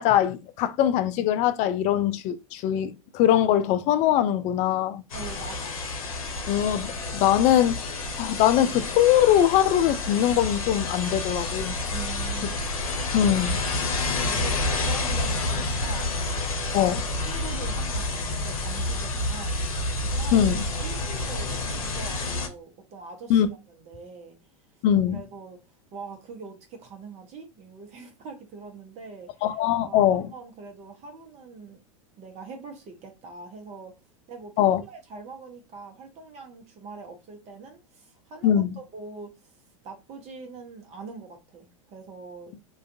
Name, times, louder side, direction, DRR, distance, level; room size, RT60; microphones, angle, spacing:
voice 1, 0.0-5.0 6.5-7.8 8.2-11.8 13.1-13.6 16.7-17.0 20.3-20.6 23.3-23.5 24.8-25.2 29.4-30.3 34.6-34.8 38.4-38.7, left 11 dB, 40° left, 0.4 m, -22 dB
sound 1, 5.1-22.5, left 2 dB, 80° left, 0.7 m, -29 dB
voice 2, 5.1-5.8 11.9-12.7 14.2-16.1 16.6-19.6 20.0-20.5 20.8-24.4 25.1-25.6 25.9-29.4 29.8-31.8 32.2-33.9 34.3-39.5 39.8-42.5, right 4 dB, 40° right, 0.8 m, -43 dB
2.5 x 2.3 x 2.5 m
hypercardioid pair, 95°, 18 cm